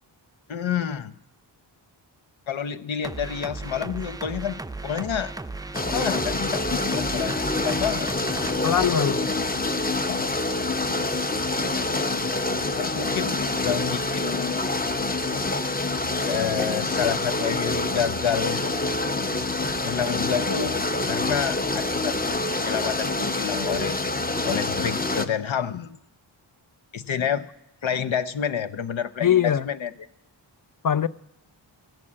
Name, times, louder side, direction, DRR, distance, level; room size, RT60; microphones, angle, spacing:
voice 1, 0.5-1.1 2.5-4.6 4.8-5.3 5.9-8.1 10.1-10.3 12.8-14.7 16.3-18.7 19.8-24.0 24.4-26.0 26.9-27.5 27.8-29.9, left 8 dB, 75° left, 0.8 m, -29 dB
sound 1, 3.0-8.9, right 2 dB, 10° right, 0.4 m, -35 dB
sound 2, 5.7-25.3, left 2 dB, 20° left, 0.8 m, -26 dB
voice 2, 8.6-9.2 29.2-29.7 30.8-31.1, left 9 dB, 45° left, 0.5 m, -21 dB
15.5 x 7.5 x 8.7 m
wide cardioid pair, 70°, 48 cm